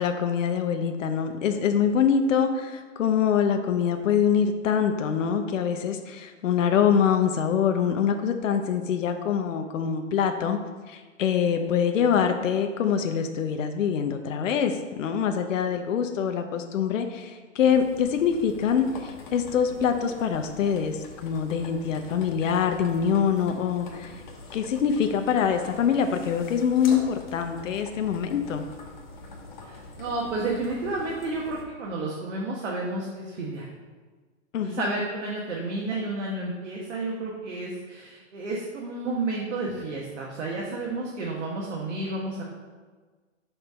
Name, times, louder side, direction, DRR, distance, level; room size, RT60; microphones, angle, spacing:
voice 1, 0.0-10.6 10.9-24.2 24.5-28.6 34.5-35.0, left 7 dB, 75° left, 6 dB, 0.7 m, -24 dB
sound 1, 17.6-31.6, left 3 dB, 40° left, 0.9 m, -44 dB
voice 2, 29.6-33.7 34.6-42.4, right 2 dB, 65° right, -2 dB, 1.2 m, -31 dB
5.9 x 3.3 x 5.5 m, 1.4 s
hypercardioid pair, 175°, 38 cm